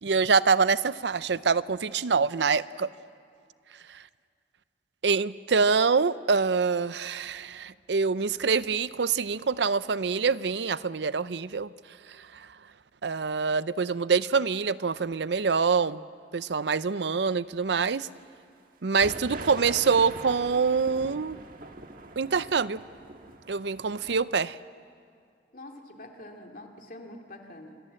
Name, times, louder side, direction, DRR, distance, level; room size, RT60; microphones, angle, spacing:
voice 1, 0.0-2.9 5.0-11.7 13.0-16.0 16.3-18.1 18.8-21.4 22.2-22.8 23.5-24.6, right 5 dB, 75° right, 16 dB, 0.6 m, -25 dB
sound 1, 19.0-24.3, right 2 dB, 50° right, 1.6 m, -43 dB
voice 2, 25.5-27.8, left 1 dB, 50° left, 2 dB, 2.7 m, -45 dB
27.5 x 22.5 x 7.7 m, 2.3 s
head